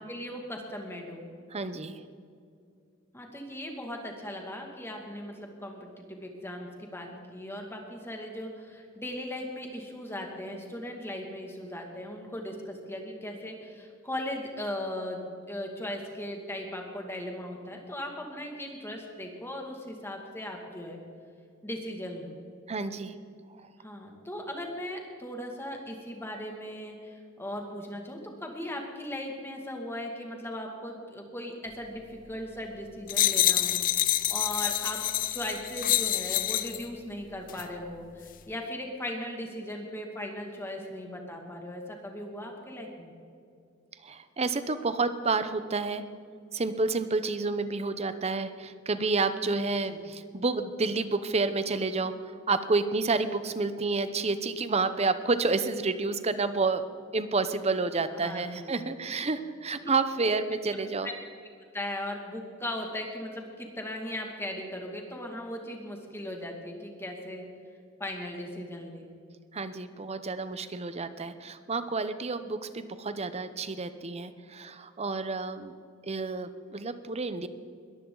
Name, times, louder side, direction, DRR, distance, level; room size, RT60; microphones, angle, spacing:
voice 1, 0.1-1.2 3.1-15.2 15.5-21.0 21.6-22.4 23.8-33.8 34.3-43.1 49.9-50.0 58.2-58.8 59.8-59.9 61.0-61.2 61.7-67.5 68.0-69.1, left 1 dB, 10° left, 2 dB, 2.2 m, -38 dB
voice 2, 1.5-2.0 22.7-23.1 44.0-46.0 46.5-56.8 57.1-61.1 69.5-75.8 76.0-77.5, right 3 dB, 30° right, 11 dB, 0.8 m, -29 dB
sound 1, 33.1-36.8 37.5-37.7, left 13 dB, 40° left, 0.5 m, -27 dB
21.5 x 14.5 x 3.9 m, 2.4 s
head